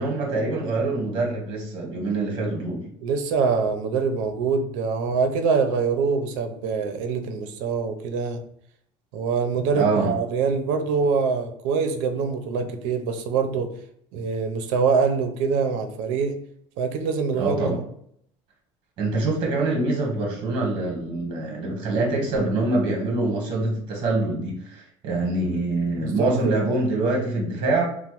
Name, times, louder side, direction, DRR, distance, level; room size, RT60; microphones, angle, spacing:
voice 1, 0.0-2.9 9.7-10.1 17.3-17.8 19.0-27.8, right 2 dB, 40° right, -1 dB, 0.9 m, -25 dB
voice 2, 3.0-8.4 9.1-13.7 14.1-16.3 16.8-17.8 26.0-26.6, right 5 dB, 70° right, 6 dB, 0.5 m, -24 dB
2.9 x 2.0 x 2.9 m, 0.69 s
cardioid pair, 170°, 13 cm